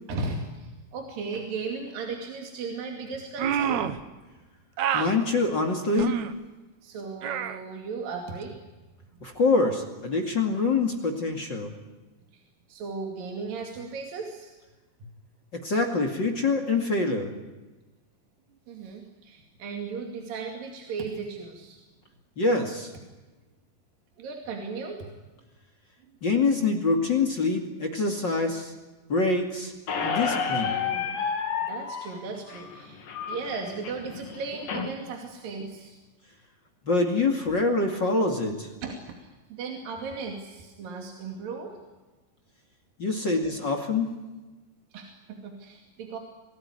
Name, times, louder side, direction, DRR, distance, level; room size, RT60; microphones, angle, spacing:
voice 1, 0.1-3.8 6.8-8.6 12.3-12.4 12.7-14.5 18.7-21.8 24.2-25.1 30.5-31.2 31.7-36.0 38.8-41.8 44.9-46.2, right 4 dB, 80° right, 2 dB, 4.2 m, -36 dB
sound 1, 3.4-4.0 4.8-5.1 5.9-6.3 7.2-7.6, right 8 dB, 65° right, 2.5 m, -27 dB
voice 2, 4.9-6.1 9.2-11.7 15.5-17.3 22.4-22.9 26.2-28.7 29.1-29.7 30.0-30.7 36.8-38.7 43.0-44.1, left 3 dB, 35° left, 5 dB, 2.6 m, -25 dB
Squeak, 29.9-34.9, left 6 dB, 75° left, 4.2 m, -31 dB
27.5 x 18.5 x 9.9 m, 1.2 s
omnidirectional pair, 3.9 m